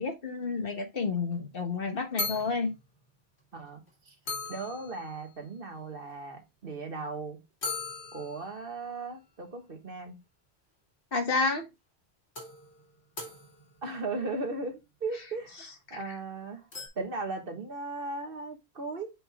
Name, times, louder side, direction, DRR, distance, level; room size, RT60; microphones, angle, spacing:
voice 1, 0.0-2.7 11.1-11.7 16.1-16.2, left 4 dB, 60° left, 1.4 m, -30 dB
sound 1, 1.3-1.4 1.8-1.9 2.2-2.8 3.6-3.7 3.9-4.0 4.3-5.4 7.6-8.8 11.2-11.3 12.4-14.0 16.7-16.9, left 3 dB, 80° left, 2.5 m, -38 dB
voice 2, 3.5-4.2 4.5-7.4 8.1-10.2 13.8-16.7 16.9-19.1, right 3 dB, 60° right, 1.7 m, -37 dB
5.9 x 5.3 x 3.5 m
omnidirectional pair, 1.1 m